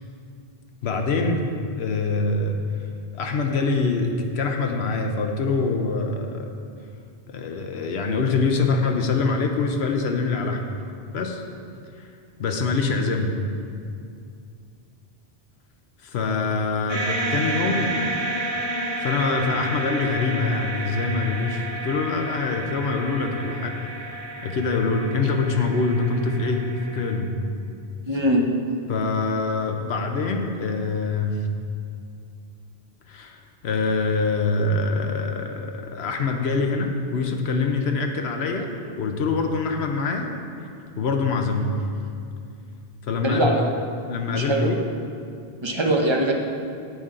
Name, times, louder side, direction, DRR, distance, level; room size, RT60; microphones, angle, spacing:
voice 1, 0.8-1.4 1.7-2.6 3.1-6.5 7.3-10.6 11.1-11.4 12.0-12.1 12.4-13.3 16.0-17.9 19.0-23.7 24.4-26.6 26.9-27.3 28.9-31.5 33.1-38.7 39.0-40.3 40.6-40.7 41.0-41.7 43.0-43.5 44.1-44.8, left 4 dB, 85° left, 3 dB, 1.1 m, -24 dB
sound 1, 16.9-27.1, right 1 dB, 75° right, 1.7 m, -31 dB
voice 2, 28.1-28.4 43.2-43.6 44.3-44.7 45.6-46.3, right 1 dB, 30° right, 1 dB, 0.8 m, -21 dB
9.8 x 8.1 x 3.8 m, 2.4 s
omnidirectional pair, 1.1 m